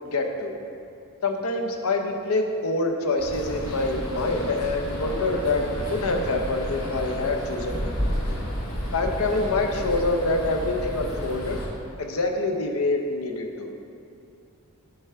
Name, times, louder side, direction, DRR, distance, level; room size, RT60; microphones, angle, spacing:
voice 1, 0.1-0.5 1.2-7.8 8.3-8.4 8.9-11.6 12.0-13.7, left 2 dB, 80° left, 3 dB, 0.6 m, -26 dB
sound 1, 3.2-11.7, equal, 65° left, 1.1 m, -31 dB
6.7 x 3.4 x 5.6 m, 2.5 s
head